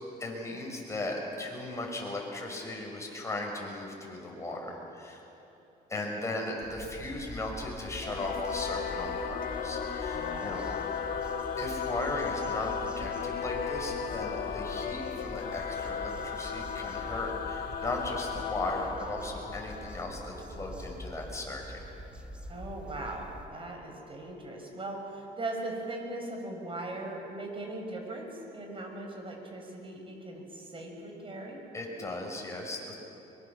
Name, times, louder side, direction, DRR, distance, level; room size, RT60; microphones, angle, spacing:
voice 1, 0.2-5.3 5.9-10.6 11.6-21.8 31.7-33.1, left 2 dB, 15° left, 0 dB, 6.1 m, -37 dB
sound 1, 6.6-23.5, equal, 5° right, 1.6 m, -45 dB
Singing / Musical instrument, 8.0-20.9, left 6 dB, 55° left, 1.7 m, -35 dB
voice 2, 10.1-10.7 22.5-31.6, right 2 dB, 30° right, 2 dB, 6.0 m, -39 dB
24.5 x 23.0 x 7.3 m, 3.0 s
cardioid pair, 110°, 17 cm